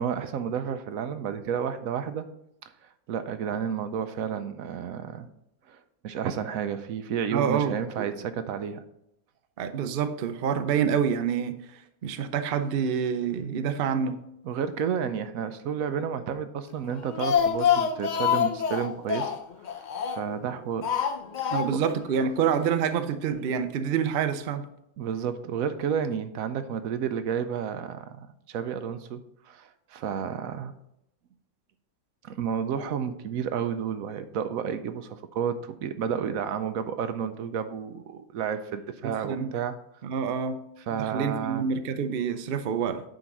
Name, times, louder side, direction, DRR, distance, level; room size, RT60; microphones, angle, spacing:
voice 1, 0.0-2.2 2.8-5.3 5.7-8.8 14.4-19.3 19.7-20.9 21.4-21.8 25.0-29.2 29.4-30.7 32.2-39.8 40.9-41.7, right 7 dB, 80° right, 10 dB, 1.1 m, -31 dB
voice 2, 7.3-8.0 9.6-14.2 21.5-24.7 39.2-39.5 40.0-40.6 40.9-43.0, right 7 dB, 55° right, 9 dB, 0.7 m, -27 dB
Speech, 16.9-20.4 20.8-22.0 22.2-22.3 22.6-22.7, left 8 dB, 70° left, 0.4 m, -26 dB
9.1 x 3.8 x 6.0 m, 0.80 s
omnidirectional pair, 1.5 m